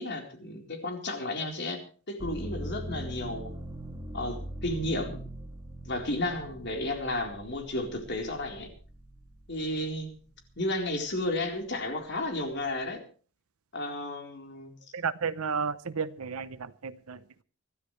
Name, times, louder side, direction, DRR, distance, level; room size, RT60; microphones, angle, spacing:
voice 1, 0.0-1.8 2.1-3.5 4.1-5.2 5.8-8.7 9.5-10.1 10.6-13.0 13.7-14.7, left 1 dB, 50° left, 3 dB, 4.1 m, -33 dB
sound 1, 2.2-10.0 10.5-11.3, right 1 dB, 20° right, 2.4 m, -42 dB
voice 2, 14.9-17.4, right 5 dB, 90° right, 13 dB, 0.8 m, -33 dB
24.5 x 13.5 x 3.3 m, 0.39 s
head